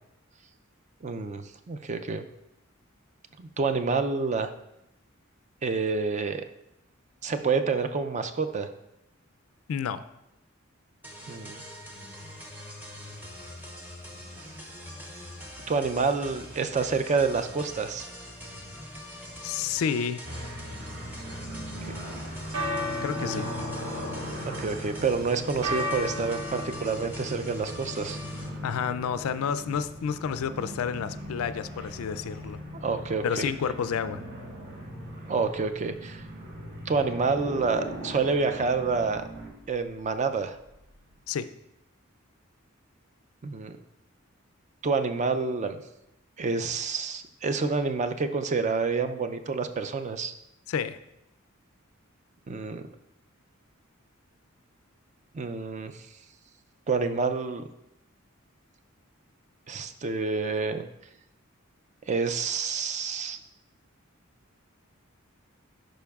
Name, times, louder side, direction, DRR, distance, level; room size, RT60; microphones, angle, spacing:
voice 1, 1.0-2.3 3.4-4.5 5.6-6.4 7.2-8.7 11.3-11.6 14.4-14.5 15.7-18.1 23.2-23.4 24.5-28.2 32.8-33.4 35.3-36.2 36.9-39.2 39.7-40.6 43.4-43.8 44.8-45.8 46.4-50.3 52.5-52.8 55.3-56.1 56.9-57.6 59.7-60.8 62.1-63.4, right 4 dB, 35° right, 9 dB, 0.4 m, -28 dB
voice 2, 9.7-10.1 19.4-20.3 23.0-23.5 28.6-32.6 33.2-34.2 41.3-41.5 50.7-51.0, left 7 dB, 85° left, 13 dB, 0.4 m, -30 dB
sound 1, 11.0-28.5, left 1 dB, 10° right, 0.8 m, -43 dB
sound 2, 20.2-39.5, equal, 60° right, 2.7 m, -39 dB
sound 3, 22.2-41.2, left 1 dB, 80° right, 1.5 m, -39 dB
11.5 x 5.2 x 2.3 m, 0.85 s
head